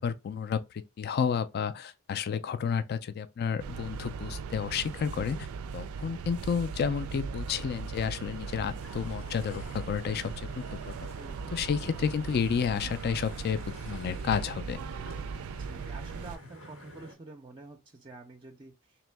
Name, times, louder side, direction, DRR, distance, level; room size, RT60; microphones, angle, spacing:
voice 1, 0.0-5.5 5.7-11.1 11.5-13.6 13.9-14.8, left 7 dB, 50° left, 0.3 m, -31 dB
sound 1, 3.6-16.4, right 5 dB, 90° right, 0.4 m, -39 dB
sound 2, 8.1-17.2, equal, 90° left, 2.0 m, -50 dB
voice 2, 11.1-12.1 15.5-19.0, right 3 dB, 25° right, 0.4 m, -49 dB
3.6 x 3.0 x 3.3 m
head